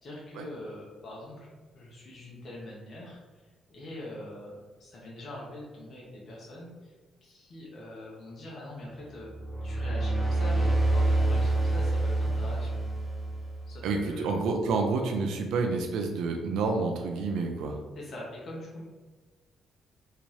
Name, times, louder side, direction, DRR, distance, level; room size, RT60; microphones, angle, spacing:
voice 1, 0.0-6.9 7.2-9.3 9.6-12.8 13.7-14.3 17.9-18.8, left 1 dB, 50° left, -4 dB, 1.0 m, -43 dB
sound 1, 9.2-13.9, right 2 dB, ahead, 0.9 m, -27 dB
voice 2, 13.8-17.8, right 4 dB, 85° right, 3 dB, 0.4 m, -29 dB
3.4 x 2.8 x 3.1 m, 1.3 s
cardioid pair, 90°, 0 cm